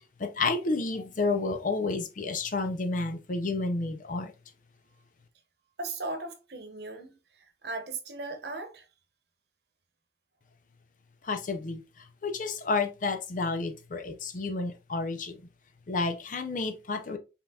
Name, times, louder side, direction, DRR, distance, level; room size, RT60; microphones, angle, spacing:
voice 1, 0.2-4.3 11.2-11.8 12.2-15.4 15.9-17.2, left 3 dB, 45° left, 0.6 m, -30 dB
voice 2, 5.8-7.2 7.6-8.8, right 3 dB, 60° right, 1.0 m, -37 dB
5.5 x 3.5 x 2.4 m
head